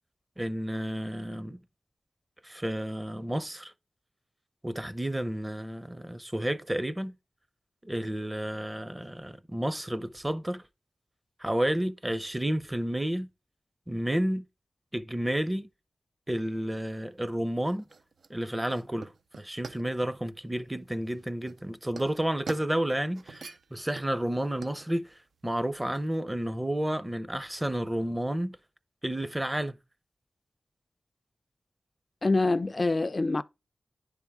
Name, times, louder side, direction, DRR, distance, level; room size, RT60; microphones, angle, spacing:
voice 1, 0.4-1.6 2.4-3.7 4.6-7.1 7.8-10.6 11.4-13.3 13.9-14.4 14.9-15.7 16.3-17.9 18.3-19.1 19.4-25.1 25.4-28.6 29.0-29.8, right 1 dB, 20° right, 0.6 m, -31 dB
sound 1, 16.9-26.2, right 4 dB, 85° right, 0.5 m, -47 dB
voice 2, 32.2-33.4, left 3 dB, 45° left, 0.3 m, -25 dB
10.0 x 3.5 x 3.5 m
cardioid pair, 45°, 0 cm